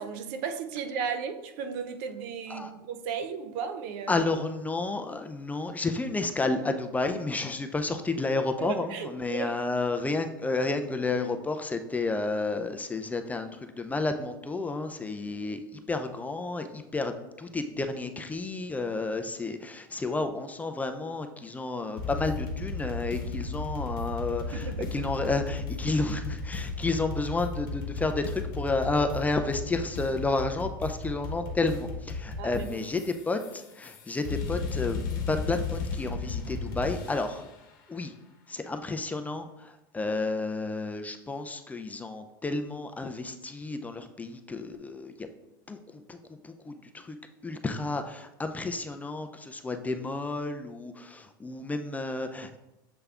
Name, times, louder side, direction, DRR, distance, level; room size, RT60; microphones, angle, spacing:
voice 1, 0.0-4.2 8.6-9.5 24.5-24.9 32.4-32.9, right 6 dB, 65° right, 0.5 m, -35 dB
voice 2, 4.1-35.0 35.3-37.5 37.9-38.1 38.5-45.3 45.7-47.2 47.4-52.6, left 3 dB, 15° left, 0.3 m, -31 dB
sound 1, 22.0-37.5, left 4 dB, 75° left, 0.9 m, -35 dB
6.8 x 3.3 x 2.3 m
supercardioid pair, 105°, 11 cm